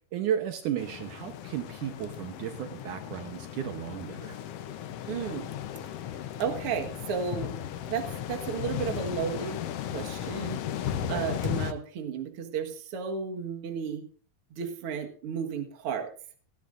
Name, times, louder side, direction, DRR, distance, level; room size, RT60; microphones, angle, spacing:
voice 1, 0.1-4.4 11.0-11.3, right 10 dB, 70° right, 7 dB, 2.3 m, -34 dB
sound 1, 0.8-11.7, left 10 dB, 85° left, 1.3 m, -36 dB
voice 2, 5.1-5.5 6.4-7.5 7.9-9.7 9.9-10.6 11.1-14.1 14.5-16.1, right 6 dB, 50° right, 4 dB, 2.1 m, -33 dB
18.5 x 14.5 x 2.6 m, 0.40 s
omnidirectional pair, 3.9 m